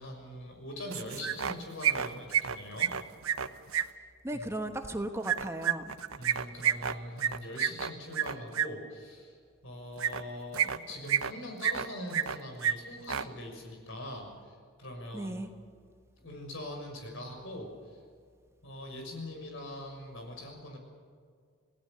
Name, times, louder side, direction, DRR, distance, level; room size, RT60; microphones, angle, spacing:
voice 1, 0.0-2.9 4.3-4.5 6.2-9.4 9.6-15.4 16.2-18.0 18.6-20.8, left 1 dB, 65° left, 2 dB, 6.4 m, -42 dB
sound 1, 0.9-1.5 1.8-3.8 5.2-8.7 10.0-10.2 10.5-11.3 11.6-12.4 12.6-12.7 13.0-13.2, right 9 dB, 80° right, 0.9 m, -29 dB
voice 2, 4.2-5.9 15.1-15.5, right 1 dB, 15° right, 6 dB, 1.1 m, -36 dB
28.0 x 18.0 x 6.8 m, 2.1 s
head